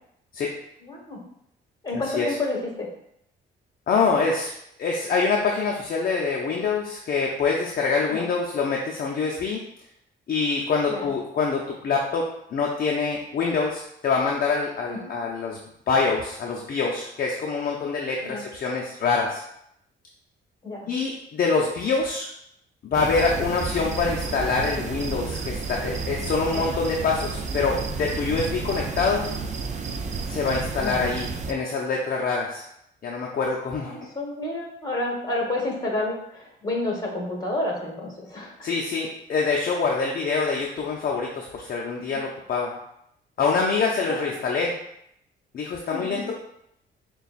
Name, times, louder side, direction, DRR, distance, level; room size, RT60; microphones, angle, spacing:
voice 1, 0.8-1.2 1.8-2.9 8.1-8.3 10.8-11.0 14.9-15.0 18.2-18.4 20.6-20.9 26.5-26.6 30.8-31.1 33.8-38.7 42.1-42.2 44.1-44.4 45.9-46.2, left 2 dB, 20° left, -1 dB, 1.4 m, -30 dB
voice 2, 1.9-2.4 3.9-4.5 4.8-9.6 10.3-12.3 12.5-15.6 15.9-19.4 20.9-22.3 22.8-29.3 30.3-32.6 33.0-33.9 38.6-42.8 43.4-44.8 45.5-46.3, left 4 dB, 50° left, -2 dB, 0.6 m, -25 dB
sound 1, 22.9-31.5, right 4 dB, 35° right, 0.4 m, -31 dB
6.5 x 2.3 x 2.5 m, 0.76 s
cardioid pair, 90°, 20 cm